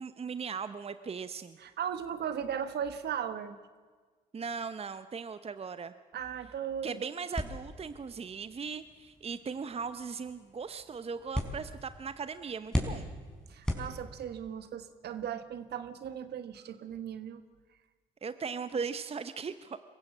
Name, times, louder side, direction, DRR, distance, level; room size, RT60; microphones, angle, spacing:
voice 1, 0.0-1.6 4.3-5.9 6.8-13.1 18.2-19.8, right 5 dB, 35° right, 12 dB, 0.9 m, -38 dB
voice 2, 1.6-3.6 6.1-7.0 13.5-17.4, right 8 dB, 60° right, 11 dB, 1.4 m, -37 dB
sound 1, 7.3-14.5, left 1 dB, 5° left, 5.0 m, -39 dB
23.5 x 15.0 x 7.5 m, 1.5 s
hypercardioid pair, 55°, 19 cm